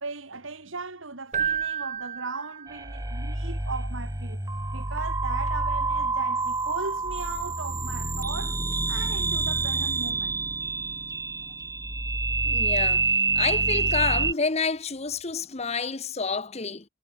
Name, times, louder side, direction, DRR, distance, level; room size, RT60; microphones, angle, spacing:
voice 1, 0.0-4.4 4.7-10.4, right 3 dB, 85° right, 2.8 m, -37 dB
Keyboard (musical), 1.3-3.1, right 8 dB, 40° right, 1.6 m, -31 dB
sound 1, 2.7-14.3, right 3 dB, 15° right, 1.9 m, -27 dB
voice 2, 12.4-13.0 13.4-16.8, left 4 dB, 35° left, 1.1 m, -29 dB
head